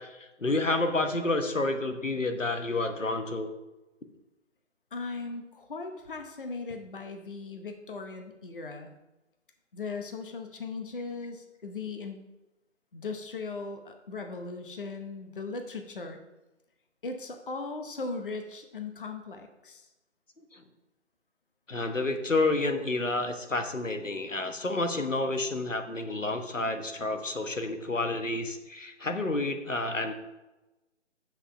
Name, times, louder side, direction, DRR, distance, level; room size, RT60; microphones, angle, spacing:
voice 1, 0.0-3.5 20.5-20.6 21.7-30.1, left 2 dB, 85° left, 6 dB, 1.3 m, -29 dB
voice 2, 4.9-8.9 9.7-12.2 12.9-16.2 17.0-19.9, left 3 dB, 45° left, 5 dB, 0.9 m, -38 dB
8.1 x 6.0 x 5.6 m, 1.0 s
figure-of-eight pair, 150°, 37 cm